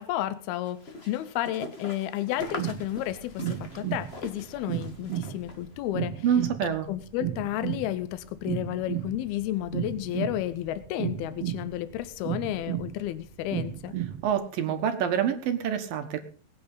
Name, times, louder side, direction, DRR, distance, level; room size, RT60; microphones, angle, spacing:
voice 1, 0.0-6.2 6.9-14.0, left 13 dB, 85° left, 14 dB, 2.7 m, -32 dB
sound 1, 0.7-5.7, left 2 dB, 25° left, 1.3 m, -42 dB
sound 2, 2.4-14.3, right 11 dB, 50° right, 2.2 m, -34 dB
voice 2, 6.2-6.9 14.2-16.2, right 8 dB, 70° right, 7 dB, 3.1 m, -26 dB
19.5 x 9.2 x 5.6 m, 0.42 s
omnidirectional pair, 4.3 m